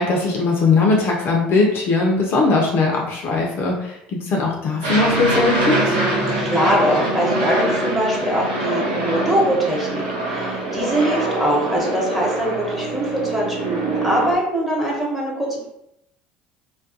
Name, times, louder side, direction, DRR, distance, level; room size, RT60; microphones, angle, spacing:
voice 1, 0.0-6.0, left 3 dB, 45° left, -1 dB, 0.4 m, -19 dB
Aircraft, 4.8-14.3, right 1 dB, 75° right, 0.7 m, -23 dB
voice 2, 6.4-15.7, right 1 dB, 5° right, -3 dB, 1.0 m, -22 dB
2.3 x 2.2 x 2.5 m, 0.79 s
hypercardioid pair, 65°, 5 cm